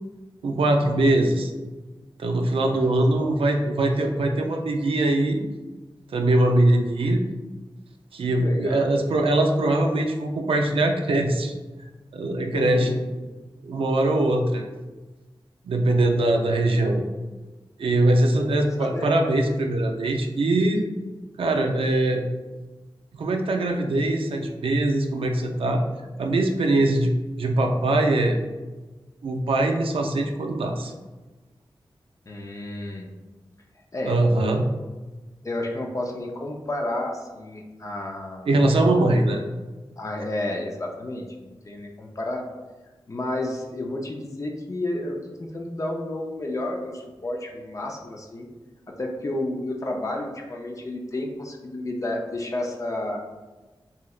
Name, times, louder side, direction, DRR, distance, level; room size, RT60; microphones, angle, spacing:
voice 1, 0.4-1.5 2.2-5.4 6.1-7.2 8.1-11.5 12.1-13.0 13.6-14.7 15.6-17.0 17.8-20.8 21.4-22.2 23.1-25.8 26.2-28.4 29.2-30.9 34.1-34.6 38.5-39.4, right 2 dB, 85° right, 3 dB, 0.4 m, -22 dB
voice 2, 2.6-3.3 8.4-8.9 12.5-13.0 16.1-16.7 18.8-19.2 32.3-33.1 33.9-34.2 35.4-38.5 40.0-42.4 43.1-48.5 48.9-53.3, left 1 dB, 35° left, 0 dB, 0.4 m, -31 dB
3.1 x 2.7 x 2.3 m, 1.2 s
wide cardioid pair, 90°, 9 cm